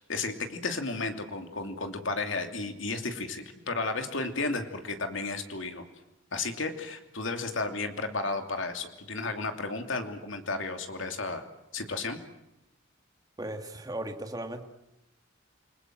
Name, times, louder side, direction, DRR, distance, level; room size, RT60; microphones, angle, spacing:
voice 1, 0.0-5.8 6.3-11.4 11.7-12.2, left 3 dB, 70° left, 6 dB, 2.8 m, -33 dB
voice 2, 13.4-14.6, right 1 dB, 20° right, 5 dB, 2.0 m, -36 dB
29.0 x 21.0 x 7.7 m, 0.90 s
head